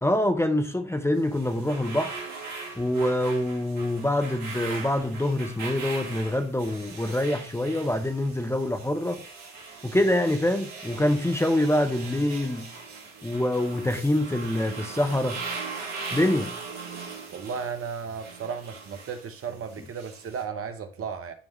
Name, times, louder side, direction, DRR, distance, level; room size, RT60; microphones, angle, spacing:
voice 1, 0.0-2.2 2.8-9.3 9.8-12.7 13.2-15.4 16.1-16.5, left 1 dB, 10° left, 0.7 m, -25 dB
sound 1, 1.2-20.4, right 4 dB, 60° right, 1.6 m, -40 dB
voice 2, 17.3-21.3, right 6 dB, 45° right, 0.9 m, -34 dB
9.7 x 3.5 x 3.1 m
figure-of-eight pair, 50°, 32 cm